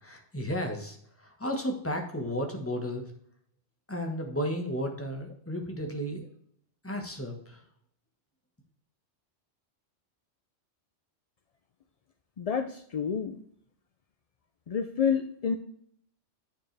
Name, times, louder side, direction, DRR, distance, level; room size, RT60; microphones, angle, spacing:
voice 1, 0.0-3.0 3.9-6.2 6.8-7.6, equal, 10° left, 2 dB, 1.3 m, -33 dB
voice 2, 12.4-13.4 14.7-15.6, left 7 dB, 55° left, 8 dB, 0.4 m, -29 dB
8.7 x 7.1 x 3.3 m, 0.65 s
omnidirectional pair, 1.2 m